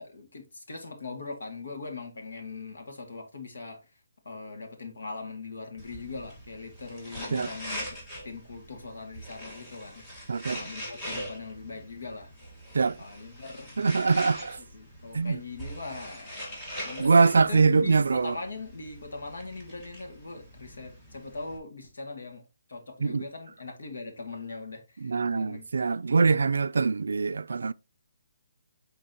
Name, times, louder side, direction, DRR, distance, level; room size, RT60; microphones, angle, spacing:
voice 1, 0.0-3.8 4.2-7.9 8.2-10.0 10.5-12.3 13.0-13.9 14.7-22.4 22.7-25.7, left 3 dB, 80° left, 2.2 m, -40 dB
sound 1, 5.8-21.6, equal, 15° left, 1.5 m, -42 dB
voice 2, 10.3-10.6 12.7-13.0 13.8-14.6 15.1-15.4 17.0-18.4 23.0-23.2 25.0-27.7, right 4 dB, 80° right, 0.3 m, -23 dB
9.3 x 3.9 x 2.9 m
hypercardioid pair, 170°, 0 cm